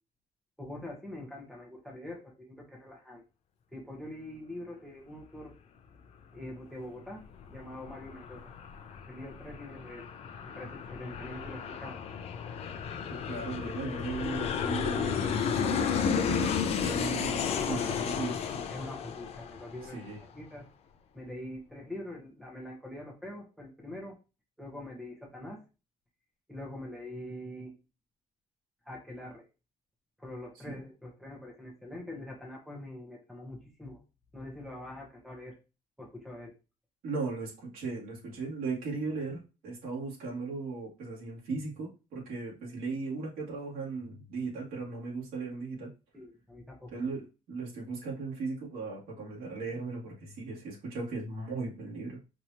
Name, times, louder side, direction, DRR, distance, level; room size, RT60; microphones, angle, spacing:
voice 1, 0.6-3.2 3.7-5.6 6.3-8.5 9.1-10.1 10.5-12.0 17.7-18.1 18.5-20.7 21.1-24.2 24.6-25.6 26.5-27.7 28.8-29.5 30.2-34.0 34.3-35.6 36.0-36.5 46.1-46.9, left 1 dB, ahead, -1 dB, 0.8 m, -44 dB
Aircraft, 7.0-20.2, left 7 dB, 45° left, 0.5 m, -33 dB
voice 2, 13.1-18.5 19.9-20.2 30.7-30.8 37.0-45.9 46.9-47.2 47.5-52.2, right 3 dB, 85° right, -4 dB, 2.1 m, -37 dB
4.7 x 2.8 x 2.7 m, 0.30 s
cardioid pair, 180°, 15 cm